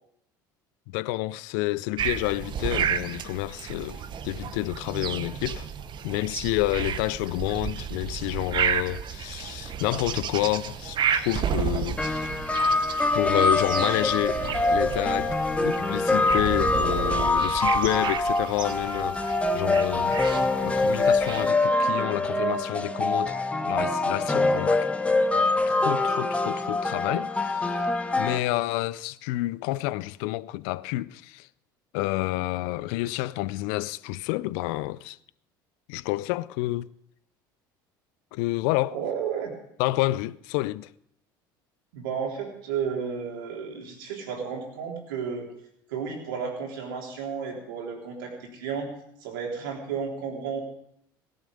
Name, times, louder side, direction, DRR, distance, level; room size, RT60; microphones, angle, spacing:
voice 1, 0.9-5.7 6.0-12.3 13.1-20.2 20.6-23.4 23.6-24.8 25.7-27.9 28.2-31.5 31.9-35.2 35.9-36.9 38.3-39.0 39.8-40.9, left 18 dB, 65° left, 0.5 m, -29 dB
sound 1, 2.0-21.5, right 8 dB, 45° right, 1.0 m, -32 dB
sound 2, 12.0-28.4, left 2 dB, 10° left, 1.2 m, -24 dB
voice 2, 38.9-39.5 41.9-45.5 45.9-48.9 49.2-50.6, right 6 dB, 75° right, 3.5 m, -32 dB
17.5 x 11.5 x 5.3 m
hypercardioid pair, 70°, 11 cm